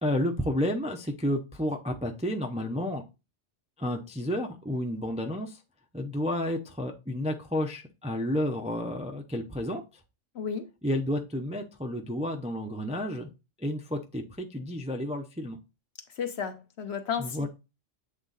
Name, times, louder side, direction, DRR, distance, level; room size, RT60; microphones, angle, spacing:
voice 1, 0.0-3.0 3.8-5.6 5.9-9.8 10.8-13.3 13.6-15.6 17.2-17.5, left 1 dB, 10° right, 3 dB, 0.4 m, -31 dB
voice 2, 10.3-10.7 16.2-17.5, left 7 dB, 60° left, 7 dB, 1.1 m, -33 dB
7.9 x 3.6 x 4.0 m, 0.28 s
omnidirectional pair, 1.3 m